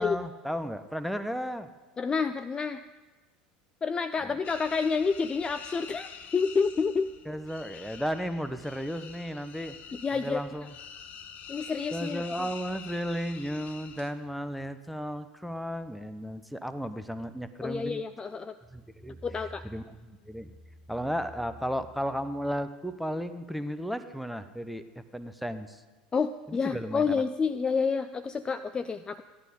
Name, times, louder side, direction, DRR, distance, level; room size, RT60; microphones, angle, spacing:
voice 1, 0.0-1.7 4.2-4.3 7.3-9.7 10.1-10.7 11.9-18.0 18.7-19.2 19.6-20.5 20.9-25.8 26.5-27.2, equal, ahead, 11 dB, 0.8 m, -34 dB
voice 2, 2.0-2.8 3.8-7.1 10.0-10.4 11.5-12.2 17.6-18.6 19.2-19.6 26.1-29.2, left 5 dB, 20° left, 11 dB, 0.4 m, -29 dB
sound 1, 4.4-14.1, left 7 dB, 40° left, 1.1 m, -46 dB
15.0 x 11.0 x 5.2 m, 1.2 s
figure-of-eight pair, 75°, 4 cm